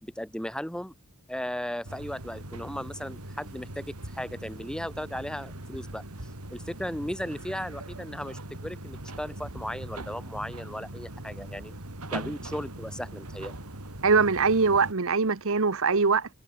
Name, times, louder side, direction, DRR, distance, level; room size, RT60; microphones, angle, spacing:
voice 1, 0.0-0.9 1.3-6.0 6.5-11.8 12.1-13.6, equal, 5° left, 3.7 m, -36 dB
sound 1, 1.8-14.9, right 1 dB, 90° right, 4.1 m, -41 dB
voice 2, 14.0-16.3, right 4 dB, 65° right, 1.1 m, -22 dB
head